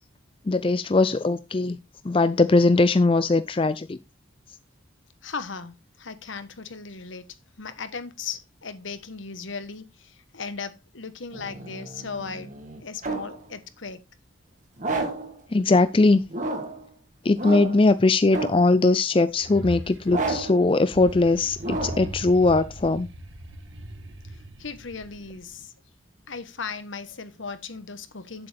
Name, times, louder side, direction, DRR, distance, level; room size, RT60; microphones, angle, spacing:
voice 1, 0.5-1.8 2.0-4.0 15.5-16.2 17.2-23.1, left 3 dB, 25° left, 0.4 m, -20 dB
voice 2, 5.2-14.0 24.6-25.7 26.3-28.5, left 5 dB, 75° left, 1.2 m, -37 dB
sound 1, 11.3-13.4 14.8-15.4 16.3-16.8 17.4-17.9 18.3-18.8 20.1-20.6 21.6-22.2, right 2 dB, 40° right, 1.8 m, -31 dB
sound 2, 19.3-25.6, equal, 75° right, 1.6 m, -39 dB
8.9 x 7.9 x 3.4 m
head